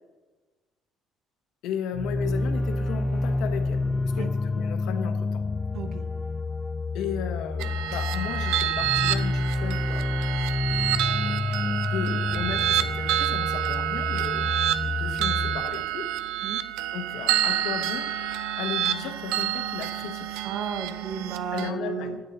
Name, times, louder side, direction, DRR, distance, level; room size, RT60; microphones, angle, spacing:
voice 1, 1.6-3.8 4.1-5.4 6.9-10.2 11.9-16.1 16.9-18.1 18.6-20.5 21.5-22.2, left 8 dB, 75° left, 7 dB, 1.1 m, -35 dB
sound 1, 1.9-15.6, left 3 dB, 15° left, 0.4 m, -28 dB
voice 2, 5.7-6.0 11.8-11.9 16.4-16.6 20.4-22.2, right 6 dB, 65° right, 9 dB, 1.1 m, -33 dB
sound 2, 7.6-21.7, right 12 dB, 90° right, 0.6 m, -28 dB
13.5 x 8.2 x 4.1 m, 1.3 s
cardioid pair, 110°, 0 cm